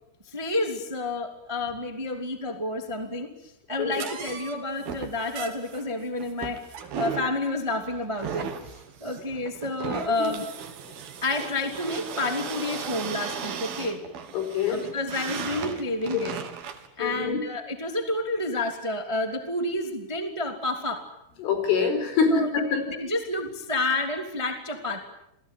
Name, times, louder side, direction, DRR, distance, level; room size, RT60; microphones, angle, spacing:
voice 1, 0.2-6.6 6.9-8.5 9.0-10.4 11.2-14.0 14.7-16.3 17.0-21.0 22.3-25.0, left 2 dB, 10° right, 5 dB, 1.3 m, -30 dB
sound 1, 3.9-16.9, right 7 dB, 60° right, 3.6 m, -36 dB
voice 2, 14.3-14.8 17.0-17.4 21.4-22.8, left 5 dB, 85° left, 7 dB, 7.3 m, -24 dB
28.5 x 20.5 x 9.3 m, 0.77 s
omnidirectional pair, 5.5 m